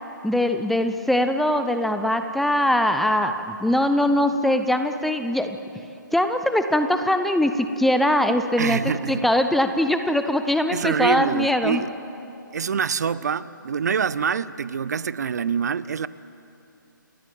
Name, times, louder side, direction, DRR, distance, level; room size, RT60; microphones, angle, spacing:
voice 1, 0.2-5.6 6.1-8.8 9.1-11.8, left 1 dB, ahead, 8 dB, 0.6 m, -22 dB
voice 2, 8.6-9.2 10.7-11.9 12.5-16.1, right 6 dB, 55° right, 18 dB, 0.6 m, -25 dB
29.5 x 12.5 x 8.9 m, 2.7 s
figure-of-eight pair, 145°, 11 cm